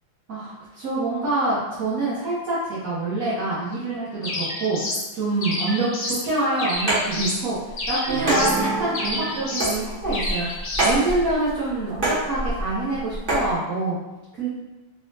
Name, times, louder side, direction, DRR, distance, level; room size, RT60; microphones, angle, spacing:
voice 1, 0.3-10.5 10.8-14.0 14.3-14.5, right 2 dB, 50° right, -11 dB, 1.2 m, -26 dB
sound 1, 4.2-5.1 5.4-6.2 6.6-7.4 7.8-8.6 8.9-9.8 10.1-11.0, left 1 dB, 65° left, 0.7 m, -29 dB
sound 2, 6.7-13.5, right 1 dB, 30° right, 1.0 m, -27 dB
sound 3, 8.1-9.9, right 4 dB, 75° right, 0.8 m, -28 dB
4.1 x 2.3 x 3.2 m, 1.1 s
omnidirectional pair, 2.4 m